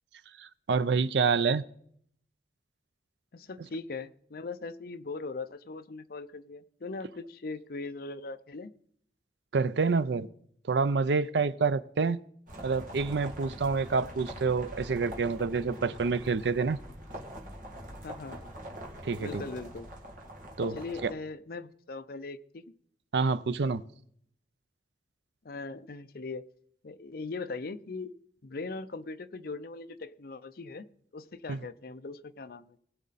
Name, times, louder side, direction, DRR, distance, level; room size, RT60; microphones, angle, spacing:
voice 1, 0.4-1.6 9.5-10.3 10.7-12.2 12.6-16.8 19.0-19.4 20.6-21.1 23.1-23.8 31.5-31.6, right 4 dB, 75° right, 0.5 m, -27 dB
voice 2, 3.3-8.7 13.8-13.9 18.0-18.4 19.2-19.9 20.6-22.6 25.4-26.4 26.8-28.1 28.4-30.8 31.1-32.8, left 3 dB, 55° left, 0.6 m, -40 dB
sound 1, 12.5-21.1, equal, 50° right, 2.2 m, -44 dB
20.0 x 7.3 x 4.1 m
head